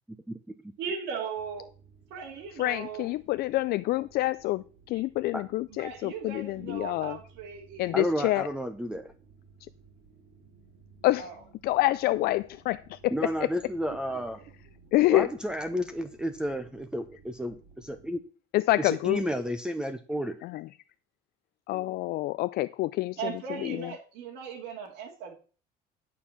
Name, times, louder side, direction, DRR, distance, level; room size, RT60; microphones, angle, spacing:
voice 1, 0.8-1.6 2.1-3.1 5.7-8.3 11.2-11.3 14.1-14.2 23.2-25.4, right 6 dB, 70° right, -2 dB, 2.3 m, -38 dB
sound 1, 1.3-18.2, right 5 dB, 45° right, 4.6 m, -58 dB
voice 2, 2.5-7.2 7.8-8.5 9.6-9.7 11.0-11.3 11.6-13.5 14.9-15.3 18.5-19.2 20.4-20.7 21.7-23.9, left 17 dB, 60° left, 14 dB, 0.4 m, -27 dB
voice 3, 7.9-9.1 13.1-14.4 15.1-18.2 18.8-20.4, equal, 5° right, 8 dB, 0.8 m, -31 dB
11.0 x 4.6 x 7.2 m, 0.40 s
cardioid pair, 115°, 18 cm